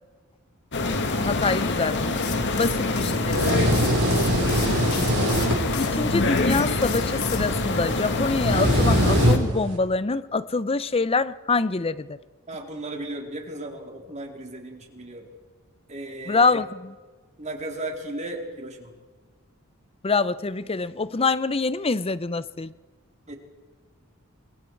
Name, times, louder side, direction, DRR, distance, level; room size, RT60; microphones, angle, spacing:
sound 1, 0.7-9.4, left 2 dB, 55° left, 2.1 m, -26 dB
voice 1, 1.2-2.2 2.6-3.6 5.8-12.2 16.3-16.9 20.0-22.7, left 4 dB, 25° left, 0.7 m, -25 dB
sound 2, 2.1-5.9 6.4-7.4, left 10 dB, 80° left, 2.3 m, -36 dB
sound 3, 2.3-9.8, right 1 dB, 85° right, 4.4 m, -25 dB
voice 2, 12.5-15.3 15.9-16.6 17.4-18.9 23.3-23.4, right 1 dB, 35° right, 3.8 m, -36 dB
28.0 x 23.5 x 4.7 m
head